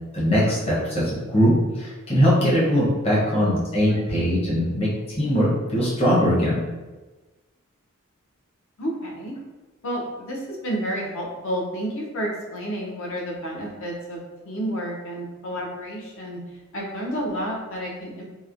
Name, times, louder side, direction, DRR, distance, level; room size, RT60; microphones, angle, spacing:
voice 1, 0.1-6.6, equal, 30° left, -7 dB, 0.7 m, -21 dB
voice 2, 8.8-9.4 9.8-16.4 16.7-18.2, equal, 65° left, -2 dB, 0.6 m, -30 dB
2.9 x 2.1 x 2.4 m, 1.2 s
head